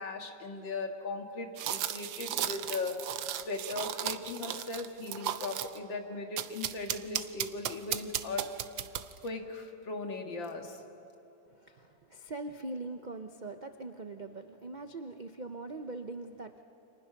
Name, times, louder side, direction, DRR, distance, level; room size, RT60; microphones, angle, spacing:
voice 1, 0.0-3.0 3.3-8.5 9.2-10.8, left 3 dB, 80° left, 4 dB, 2.6 m, -38 dB
sound 1, 1.6-5.8 6.4-9.3, right 11 dB, 90° right, 1.5 m, -35 dB
voice 2, 11.5-16.6, right 2 dB, 70° right, 7 dB, 0.4 m, -42 dB
29.5 x 27.0 x 5.9 m, 3.0 s
omnidirectional pair, 2.0 m